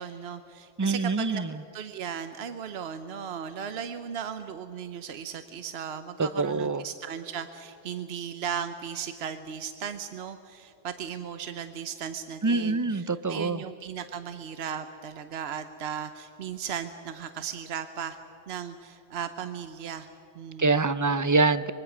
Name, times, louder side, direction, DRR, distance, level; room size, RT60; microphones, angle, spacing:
voice 1, 0.0-1.4 1.7-18.2 18.5-20.1 20.3-20.8, right 8 dB, 80° right, 10 dB, 1.0 m, -36 dB
voice 2, 0.8-1.5 6.2-6.8 12.4-13.6 20.6-21.7, right 3 dB, 30° right, 14 dB, 0.4 m, -25 dB
24.5 x 22.0 x 6.1 m, 3.0 s
omnidirectional pair, 1.1 m